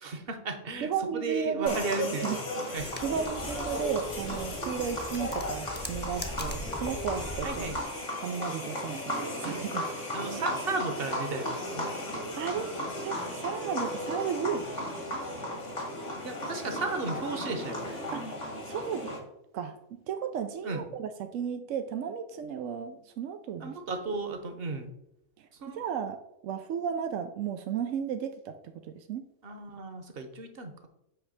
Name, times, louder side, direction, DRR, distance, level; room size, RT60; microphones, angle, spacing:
voice 1, 0.0-2.4 2.7-2.9 7.4-7.8 10.1-11.9 16.2-17.8 20.6-20.8 23.6-24.9 25.6-25.8 29.4-30.9, right 3 dB, 50° right, 7 dB, 1.1 m, -34 dB
voice 2, 0.8-1.8 2.2-2.4 2.6-7.7 8.2-9.9 12.4-12.7 13.0-14.7 18.1-19.1 19.5-23.8 25.7-28.5 28.8-29.3, right 7 dB, 90° right, 7 dB, 1.0 m, -34 dB
sound 1, 1.7-19.2, left 1 dB, 70° left, 2.2 m, -35 dB
sound 2, 2.8-7.8, equal, 10° left, 0.7 m, -41 dB
8.1 x 3.2 x 6.4 m, 0.84 s
omnidirectional pair, 1.3 m